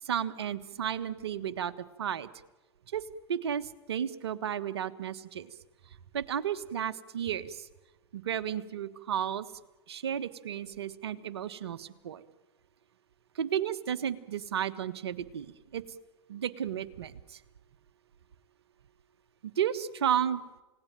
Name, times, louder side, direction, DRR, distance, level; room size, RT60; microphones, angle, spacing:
voice 1, 0.0-2.3 2.9-3.0 3.3-5.5 6.1-7.7 8.1-9.5 9.9-12.2 13.3-15.8 16.3-17.4 19.6-20.4, right 9 dB, 75° right, 12 dB, 1.4 m, -33 dB
29.0 x 18.0 x 9.0 m, 1.1 s
hypercardioid pair, 100°, 14 cm